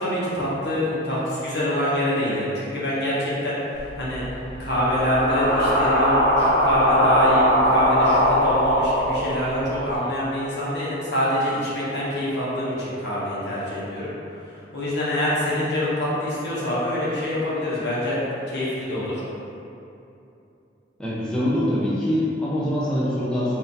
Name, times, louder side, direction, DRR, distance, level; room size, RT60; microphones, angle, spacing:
voice 1, 0.0-4.2 4.6-14.1 14.4-19.2, left 1 dB, 60° left, -8 dB, 1.1 m, -25 dB
sound 1, 3.7-9.9, equal, 90° left, 1.3 m, -21 dB
voice 2, 21.0-23.6, equal, 5° left, -9 dB, 0.5 m, -24 dB
4.3 x 2.7 x 3.9 m, 2.8 s
head